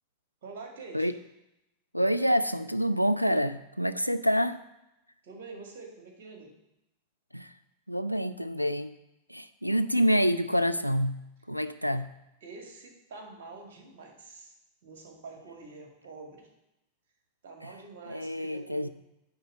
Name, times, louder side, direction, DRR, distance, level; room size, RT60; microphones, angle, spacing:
voice 1, 0.4-1.1 5.2-6.5 12.4-14.5 14.8-16.5 17.4-18.9, right 3 dB, 55° right, 2 dB, 2.2 m, -46 dB
voice 2, 1.9-4.6 7.3-7.5 7.9-8.9 9.3-12.1 17.6-17.7 18.1-18.9, equal, 90° left, 11 dB, 0.4 m, -27 dB
10.5 x 4.0 x 6.8 m, 0.90 s
figure-of-eight pair, 90°, 0 cm